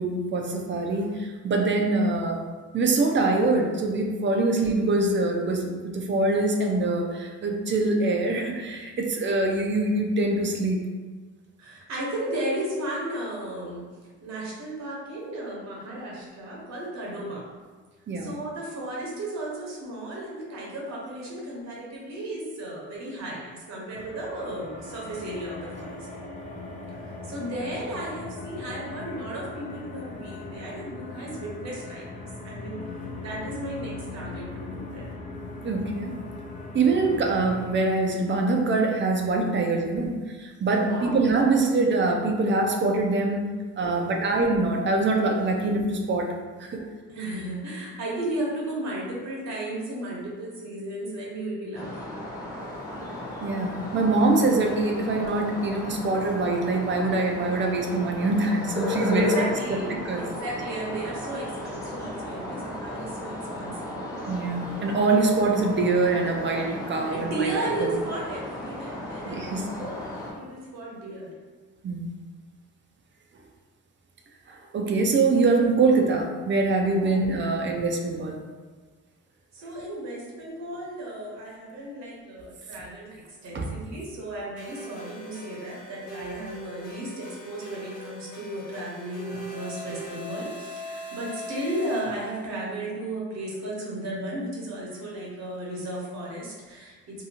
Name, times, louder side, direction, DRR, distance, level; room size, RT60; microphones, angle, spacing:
voice 1, 0.0-2.4 2.7-10.8 18.1-18.3 35.6-36.2 36.7-43.5 43.8-46.3 46.6-46.8 53.4-59.4 59.7-60.2 64.3-67.5 67.8-67.9 69.3-69.7 71.8-72.2 74.5-78.4 83.5-83.7, right 3 dB, 40° right, 1 dB, 0.5 m, -24 dB
voice 2, 11.6-13.9 14.2-17.5 18.1-26.1 26.9-35.1 40.7-41.3 46.8-52.1 59.1-64.2 66.9-70.0 70.3-71.3 77.0-77.4 79.5-97.3, right 1 dB, 65° right, -4 dB, 1.0 m, -34 dB
sound 1, 23.9-37.8, left 3 dB, 25° left, 0.4 m, -39 dB
sound 2, 51.7-70.3, left 1 dB, 10° left, 0.9 m, -35 dB
sound 3, 84.6-92.7, equal, 75° left, 0.9 m, -40 dB
2.7 x 2.3 x 2.8 m, 1.4 s
cardioid pair, 90°, 30 cm